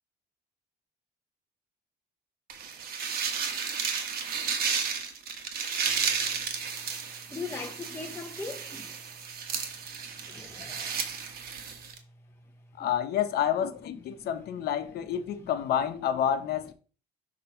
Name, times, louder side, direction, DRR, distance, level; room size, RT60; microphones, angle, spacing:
sound 1, 2.5-12.0, right 6 dB, 65° right, 1.1 m, -33 dB
voice 1, 7.3-9.0 10.2-11.0 12.8-12.9 14.1-14.3 15.4-15.5, left 4 dB, 15° left, 0.7 m, -40 dB
voice 2, 12.8-16.7, left 9 dB, 70° left, 0.9 m, -29 dB
6.6 x 3.0 x 5.7 m
cardioid pair, 110°, 17 cm